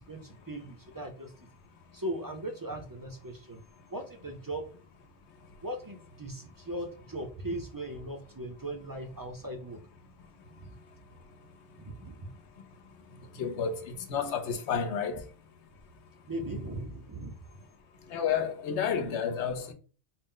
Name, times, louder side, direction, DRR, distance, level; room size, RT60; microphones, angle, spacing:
voice 1, 0.0-1.3 1.9-3.6 3.9-4.7 5.6-9.8 10.6-10.7 11.8-12.3 16.3-17.4, right 1 dB, 30° right, 0.4 m, -38 dB
voice 2, 13.4-15.2 18.1-19.7, left 7 dB, 85° left, 1.0 m, -30 dB
4.2 x 2.1 x 3.7 m
omnidirectional pair, 1.1 m